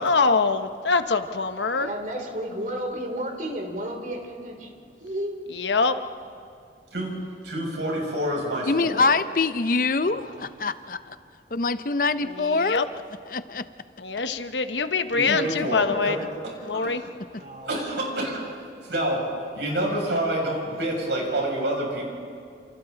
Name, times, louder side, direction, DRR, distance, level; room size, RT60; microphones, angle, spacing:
voice 1, 0.0-1.9 5.5-6.0 12.2-12.9 14.0-16.2 16.6-17.0, left 4 dB, 85° left, 9 dB, 1.1 m, -24 dB
voice 2, 1.8-5.4 7.7-8.0 9.9-10.5 17.2-17.7 20.7-20.9, right 1 dB, 45° right, 3 dB, 3.2 m, -33 dB
voice 3, 7.4-9.1 15.1-16.2 16.7-17.1 17.7-18.4 18.9-19.3 19.5-22.1, right 1 dB, 80° right, -2 dB, 6.8 m, -27 dB
voice 4, 8.7-11.2 11.5-12.8 13.3-13.7 15.3-15.4, left 3 dB, 50° left, 12 dB, 0.7 m, -24 dB
29.0 x 28.0 x 4.0 m, 2.5 s
head